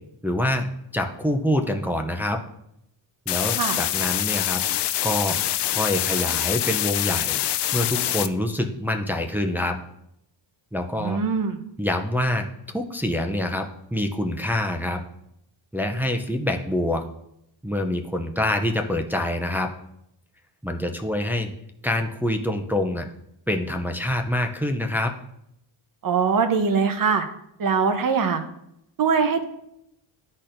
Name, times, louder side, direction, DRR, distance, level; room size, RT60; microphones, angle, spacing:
voice 1, 0.2-0.7 0.9-2.4 3.3-7.4 7.7-9.8 10.7-11.2 11.8-12.5 12.7-15.0 15.7-17.0 17.6-19.7 20.6-21.5 21.8-23.1 23.5-25.1, left 1 dB, 5° right, 3 dB, 0.4 m, -26 dB
sound 1, 3.3-8.3, left 13 dB, 60° left, 0.5 m, -25 dB
voice 2, 11.0-11.6 26.0-27.3 27.6-28.4 29.0-29.5, right 5 dB, 45° right, 7 dB, 0.8 m, -22 dB
11.5 x 4.3 x 2.5 m, 0.78 s
cardioid pair, 125°, 48 cm